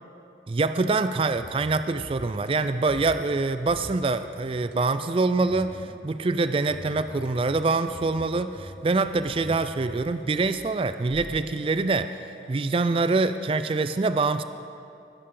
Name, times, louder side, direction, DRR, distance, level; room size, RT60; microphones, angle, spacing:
voice 1, 0.5-12.2 12.5-14.4, right 3 dB, 30° right, 11 dB, 0.3 m, -25 dB
sound 1, 1.1-1.7 2.0-2.5 2.9-3.4 3.7-4.1 4.4-6.0 6.7-8.2 8.5-10.6 11.1-11.3, equal, 85° right, 2.4 m, -43 dB
20.5 x 11.0 x 3.8 m, 2.6 s
head